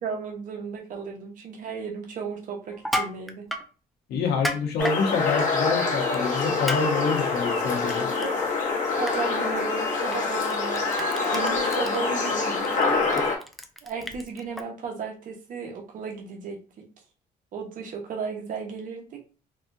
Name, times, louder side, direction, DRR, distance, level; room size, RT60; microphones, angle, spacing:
voice 1, 0.0-3.5 8.2-12.8 13.8-16.9 17.5-19.2, right 5 dB, 50° right, 1 dB, 1.0 m, -35 dB
Crushing, 2.7-3.7 4.3-5.0 6.1-6.3 6.7-6.8 7.2-8.3 8.6-8.8 9.1-9.2 10.1-10.2 10.5-14.6, equal, ahead, 0.4 m, -32 dB
voice 2, 4.1-8.1, left 5 dB, 75° left, 1 dB, 1.0 m, -27 dB
sound 1, 4.8-13.4, left 4 dB, 50° left, 1.2 m, -25 dB
4.1 x 2.3 x 2.7 m, 0.36 s
cardioid pair, 110°, 17 cm